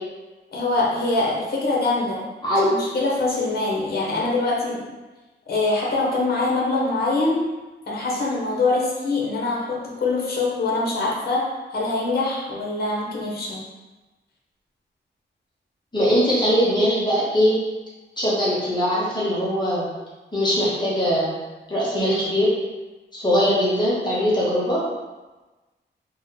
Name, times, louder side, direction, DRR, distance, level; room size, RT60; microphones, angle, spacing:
voice 1, 0.5-2.2 2.7-4.8 5.5-7.4 7.9-13.6, left 2 dB, 55° left, -3 dB, 0.9 m, -24 dB
voice 2, 15.9-17.6 18.2-19.9 20.3-21.3 21.7-22.5 23.1-24.8, equal, 20° left, -7 dB, 0.8 m, -21 dB
3.6 x 2.1 x 3.9 m, 1.2 s
wide cardioid pair, 180°, 20 cm